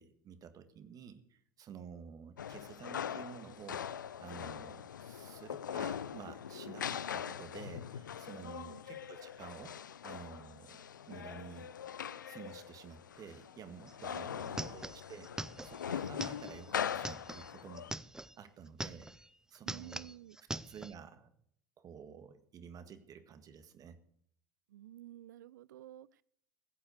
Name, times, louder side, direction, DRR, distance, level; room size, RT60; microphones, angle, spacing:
voice 1, 0.0-9.8 10.0-11.7 12.3-17.9 18.2-19.1 19.5-20.1 20.7-21.3 21.8-24.0, right 7 dB, 35° right, 11 dB, 1.7 m, -51 dB
sound 1, 2.4-17.9, left 8 dB, 80° left, 0.5 m, -42 dB
voice 2, 8.4-8.8 14.1-14.7 19.6-20.4 24.7-26.2, right 13 dB, 70° right, 23 dB, 0.5 m, -51 dB
sound 2, 13.9-14.0 14.2-18.3 18.7-19.3 19.5-20.9, right 2 dB, 5° right, 0.6 m, -43 dB
15.5 x 8.8 x 6.5 m, 0.67 s
figure-of-eight pair, 75°, 10 cm